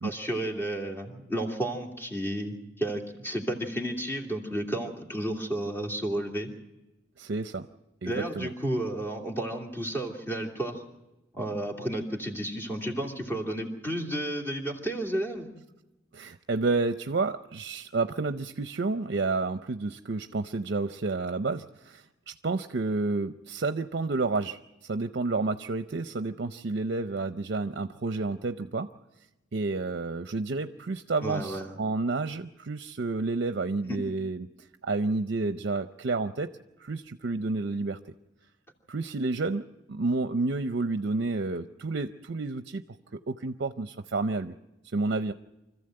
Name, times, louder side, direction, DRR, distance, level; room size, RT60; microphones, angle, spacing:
voice 1, 0.0-6.5 8.0-10.8 11.3-15.5 31.2-31.7 33.8-34.0, right 1 dB, 15° left, 1 dB, 2.7 m, -32 dB
voice 2, 7.2-7.7 8.0-8.5 16.1-28.9 29.5-34.5 34.8-36.5 36.8-38.0 38.9-42.8 43.1-44.5 44.9-45.3, right 3 dB, 60° right, 9 dB, 0.6 m, -30 dB
25.5 x 14.5 x 7.7 m, 1.0 s
head